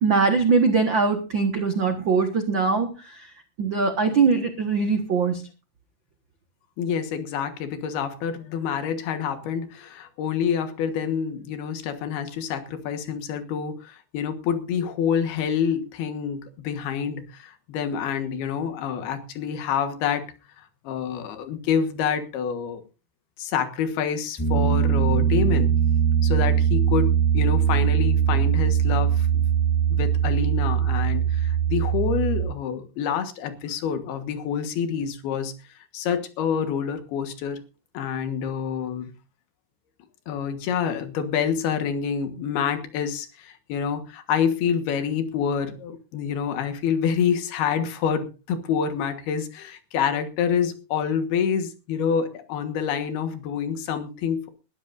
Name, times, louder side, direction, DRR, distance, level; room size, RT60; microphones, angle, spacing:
voice 1, 0.0-2.9 3.6-5.4, right 4 dB, 90° right, 6 dB, 1.0 m, -21 dB
voice 2, 6.8-20.3 20.9-22.8 23.4-25.7 26.2-29.5 29.9-35.5 35.9-37.6 38.0-39.1 40.3-54.5, left 7 dB, 75° left, 8 dB, 3.4 m, -27 dB
Piano, 24.4-32.4, right 9 dB, 15° left, 0.8 m, -21 dB
21.0 x 13.0 x 2.6 m, 0.33 s
omnidirectional pair, 4.6 m